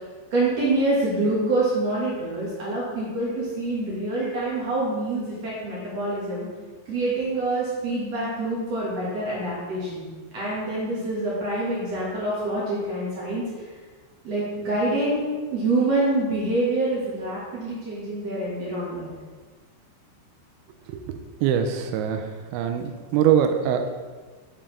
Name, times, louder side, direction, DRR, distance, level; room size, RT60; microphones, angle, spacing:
voice 1, 0.3-6.5 6.9-10.1 10.3-13.4 14.2-15.2 15.5-19.1, right 2 dB, 65° right, -7 dB, 1.6 m, -26 dB
voice 2, 21.4-22.2 22.5-22.8 23.1-23.9, right 9 dB, 85° right, 6 dB, 2.8 m, -22 dB
7.3 x 7.2 x 3.3 m, 1.4 s
omnidirectional pair, 5.3 m